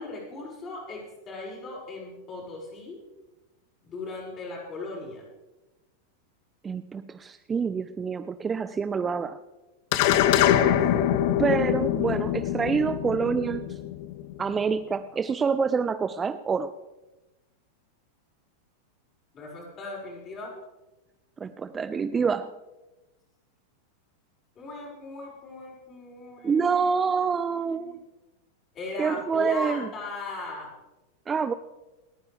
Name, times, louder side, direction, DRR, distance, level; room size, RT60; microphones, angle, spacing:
voice 1, 0.0-3.0 3.8-5.2 19.3-20.5 24.6-26.9 27.5-28.0 28.7-30.7, left 2 dB, 30° left, -3 dB, 5.7 m, -38 dB
voice 2, 6.6-9.4 11.4-13.8 14.4-16.7 21.4-22.5 26.4-28.0 29.0-29.9 31.3-31.5, right 5 dB, 20° right, 12 dB, 0.5 m, -27 dB
sound 1, 9.9-14.5, left 11 dB, 45° left, 0.8 m, -24 dB
28.5 x 9.7 x 3.4 m, 1.1 s
figure-of-eight pair, 90°, 0 cm